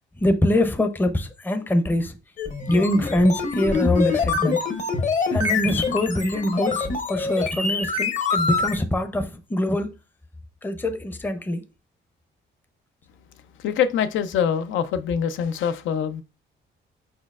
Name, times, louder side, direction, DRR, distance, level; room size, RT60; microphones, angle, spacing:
voice 1, 0.2-2.2 2.7-4.6 5.3-9.9 10.6-11.6, left 1 dB, 10° left, 0.6 m, -23 dB
sound 1, 2.4-8.8, left 4 dB, 40° left, 0.9 m, -25 dB
voice 2, 13.6-16.2, left 8 dB, 75° left, 0.5 m, -24 dB
4.7 x 4.3 x 2.4 m
cardioid pair, 90°, 20 cm